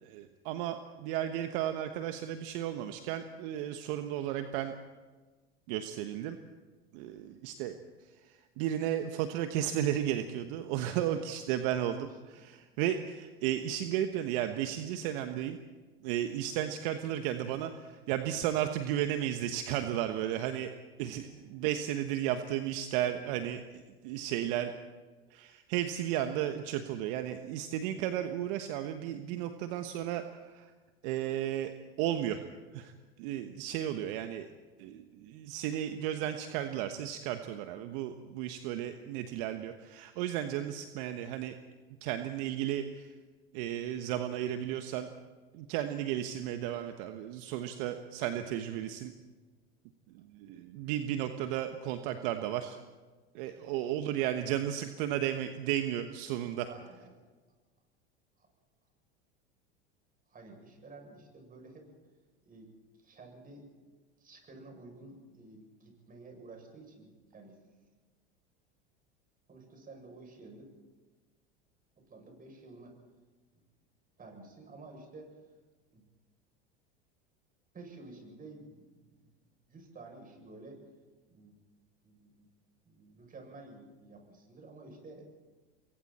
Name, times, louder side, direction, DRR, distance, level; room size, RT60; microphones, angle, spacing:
voice 1, 0.0-4.7 5.7-6.4 6.9-15.6 16.0-20.7 21.0-24.7 25.3-30.7 31.0-31.7 32.0-32.4 32.7-34.5 34.8-41.5 42.0-43.1 43.5-45.1 45.5-49.1 50.1-52.8 53.3-56.7, right 11 dB, 60° right, 7 dB, 1.4 m, -34 dB
voice 2, 56.6-57.1 58.4-58.5 60.3-61.9 62.4-62.7 63.0-63.7 64.2-67.6 69.5-70.7 72.0-72.9 73.5-73.6 74.2-75.4 75.9-76.0 77.7-79.3 79.7-80.8 81.3-81.6 82.0-82.5 82.9-85.3, right 2 dB, 30° right, 2 dB, 7.6 m, -51 dB
28.5 x 22.5 x 4.4 m, 1.3 s
hypercardioid pair, 85°, 30 cm